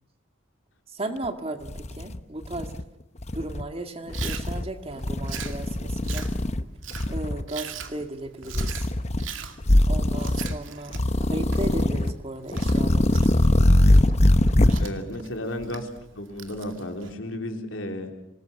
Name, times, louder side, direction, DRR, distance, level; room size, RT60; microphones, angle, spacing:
voice 1, 0.9-2.7 3.3-6.3 7.1-8.9 9.9-10.9 11.3-13.3, right 1 dB, 30° right, 7 dB, 1.9 m, -35 dB
sound 1, 1.2-1.3 1.7-2.8 3.2-3.6 4.1-4.7 5.0-6.6 6.9-7.4 8.5-9.3 9.6-10.6 10.9-12.1 12.5-14.9, left 1 dB, 35° left, 0.9 m, -22 dB
Chewing mastication, 4.1-17.1, right 7 dB, 85° right, 2.2 m, -42 dB
voice 2, 14.8-15.9 16.1-18.1, left 1 dB, 90° left, 4 dB, 3.9 m, -33 dB
26.0 x 19.5 x 7.1 m, 0.86 s
head